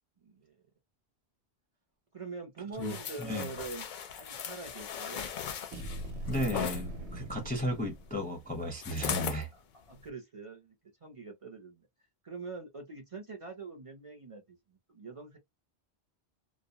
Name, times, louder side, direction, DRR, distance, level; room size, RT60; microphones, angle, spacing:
voice 1, 0.2-0.6 2.1-3.9 4.2-5.3 9.5-11.9 12.2-15.4, right 4 dB, 35° right, 0.6 m, -44 dB
sound 1, 2.8-6.8 8.8-9.4 10.0-10.1, left 8 dB, 55° left, 0.6 m, -38 dB
voice 2, 2.8-3.5 6.3-9.5, equal, 10° left, 0.5 m, -34 dB
sound 2, 5.7-8.5, right 1 dB, 85° right, 1.0 m, -41 dB
2.4 x 2.1 x 2.8 m
omnidirectional pair, 1.1 m